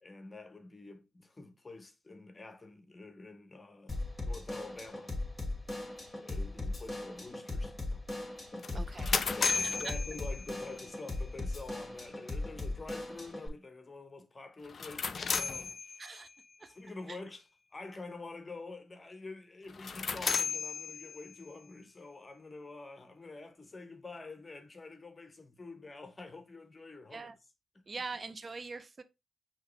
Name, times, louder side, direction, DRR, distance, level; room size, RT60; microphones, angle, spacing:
voice 1, 0.0-5.2 6.1-8.0 8.5-16.2 16.6-27.3, left 3 dB, 30° left, 0.9 m, -48 dB
Drum kit / Drum, 3.9-13.5, left 2 dB, 15° left, 2.0 m, -39 dB
sound 1, 8.6-10.9 14.6-16.3 19.7-21.5, left 5 dB, 50° left, 0.5 m, -34 dB
voice 2, 8.7-9.1 9.4-9.9 16.0-16.3 16.6-16.8 17.1-17.2 27.1-27.3 27.9-29.0, right 4 dB, 40° right, 0.5 m, -42 dB
5.6 x 2.9 x 3.2 m
hypercardioid pair, 40°, 0 cm